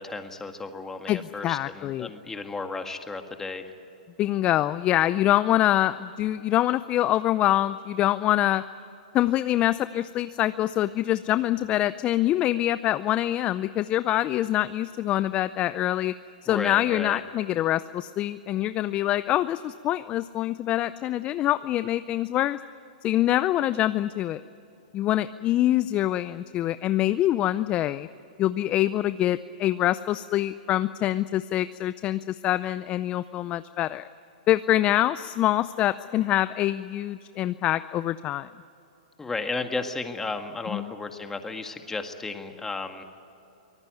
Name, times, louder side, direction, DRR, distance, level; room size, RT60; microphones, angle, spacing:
voice 1, 0.0-3.7 16.5-17.2 39.2-43.0, left 3 dB, 10° left, 6 dB, 1.8 m, -34 dB
voice 2, 1.1-2.1 4.2-8.6 9.1-16.1 16.4-22.6 23.0-24.4 24.9-28.1 28.4-34.0 34.5-38.5 40.7-40.9, left 13 dB, 30° left, 14 dB, 0.5 m, -25 dB
24.5 x 18.5 x 9.3 m, 2.8 s
hypercardioid pair, 130°, 4 cm